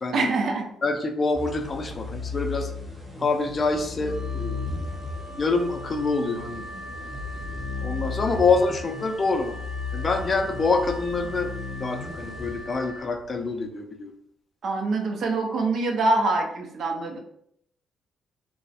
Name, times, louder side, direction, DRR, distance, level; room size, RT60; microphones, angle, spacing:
voice 1, 0.1-0.7 14.6-17.2, right 3 dB, 60° right, 2 dB, 0.5 m, -24 dB
voice 2, 0.8-2.7 3.2-4.9 5.4-6.6 7.8-9.6 9.9-11.5 11.8-14.1, left 3 dB, 35° left, 5 dB, 0.3 m, -26 dB
sound 1, 1.3-13.2, left 4 dB, 10° right, 0.7 m, -35 dB
Wind instrument woodwind instrument, 4.0-13.1, equal, 80° left, 0.6 m, -42 dB
2.4 x 2.0 x 2.5 m, 0.69 s
cardioid pair, 90°, 0 cm